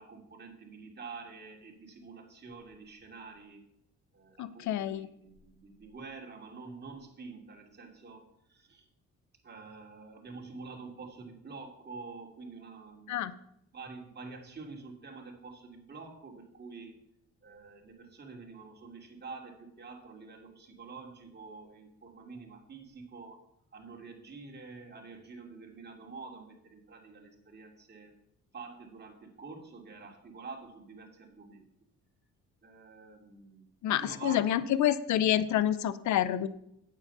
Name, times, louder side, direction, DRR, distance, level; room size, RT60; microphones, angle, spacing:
voice 1, 0.0-3.6 4.1-8.8 9.4-13.3 13.7-16.9 17.4-23.4 23.7-28.1 28.5-31.7 32.6-33.7 34.0-34.7 35.5-35.6, right 4 dB, 35° right, 1 dB, 2.7 m, -47 dB
voice 2, 4.4-5.1 13.1-13.3 33.8-36.5, left 11 dB, 70° left, 16 dB, 0.7 m, -28 dB
8.9 x 7.6 x 5.6 m, 0.77 s
cardioid pair, 90°, 30 cm